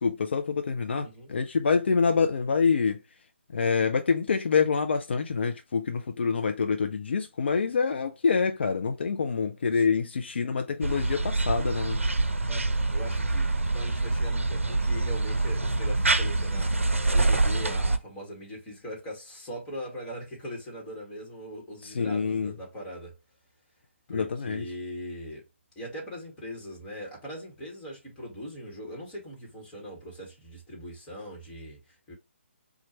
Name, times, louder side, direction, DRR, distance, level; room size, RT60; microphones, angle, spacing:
voice 1, 0.0-3.0 3.5-12.0 21.8-22.5 24.1-24.6, left 5 dB, 60° left, 0.5 m, -26 dB
voice 2, 9.7-10.0 12.5-23.2 24.1-25.5 25.8-32.2, equal, 15° left, 1.6 m, -41 dB
sound 1, 10.8-18.0, right 2 dB, 85° right, 0.6 m, -26 dB
4.3 x 2.5 x 3.0 m
figure-of-eight pair, 145°, 7 cm